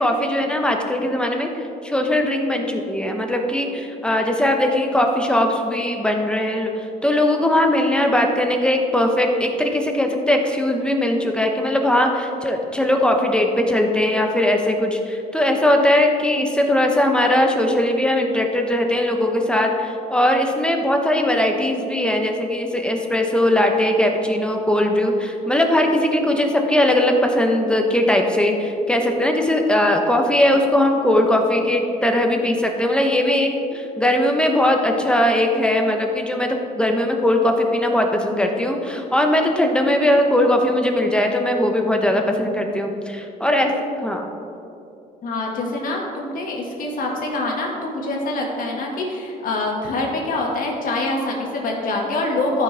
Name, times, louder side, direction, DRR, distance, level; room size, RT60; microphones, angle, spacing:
voice 1, 0.0-43.7 44.0-44.3, left 1 dB, 5° left, 3 dB, 0.9 m, -19 dB
voice 2, 45.2-52.6, left 2 dB, 55° left, -1 dB, 2.0 m, -25 dB
13.5 x 6.1 x 3.5 m, 2.6 s
cardioid pair, 110°, 17 cm